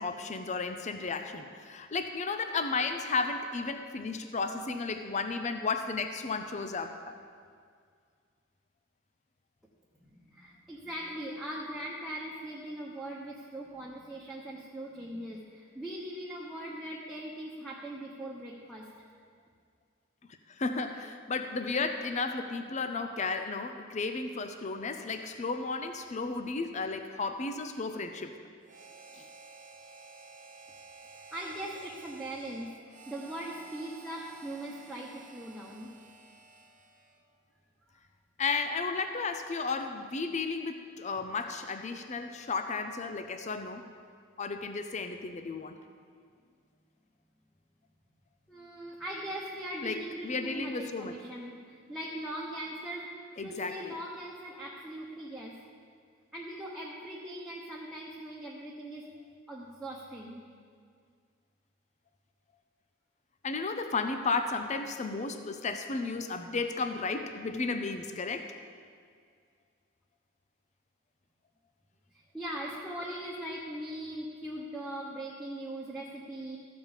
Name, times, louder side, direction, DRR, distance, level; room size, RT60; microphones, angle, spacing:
voice 1, 0.0-7.1 20.5-28.3 29.2-29.3 38.4-43.9 44.4-45.7 49.8-51.1 53.4-53.9 63.4-68.5, left 4 dB, 35° left, 7 dB, 0.5 m, -33 dB
voice 2, 10.0-19.1 31.0-35.9 48.5-53.1 53.4-55.5 56.3-59.1 59.5-60.4 72.1-76.6, right 1 dB, ahead, -5 dB, 1.0 m, -40 dB
Harmonica, 28.6-37.3, right 4 dB, 40° right, 1.0 m, -52 dB
14.0 x 5.3 x 7.3 m, 2.1 s
head